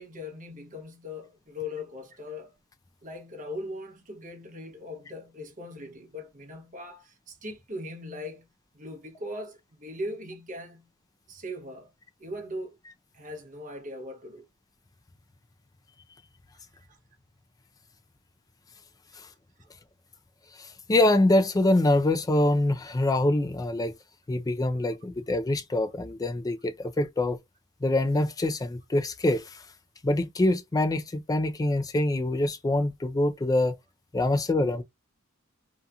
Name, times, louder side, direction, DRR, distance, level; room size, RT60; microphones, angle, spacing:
voice 1, 0.0-2.6 3.0-10.9 11.3-11.9 12.2-12.8 13.1-14.5 16.9-17.0, left 1 dB, 35° right, 0.8 m, -40 dB
voice 2, 20.6-23.9 24.3-27.4 27.8-29.6 30.0-33.8 34.1-34.8, left 1 dB, 15° left, 0.3 m, -25 dB
2.8 x 2.4 x 2.2 m
head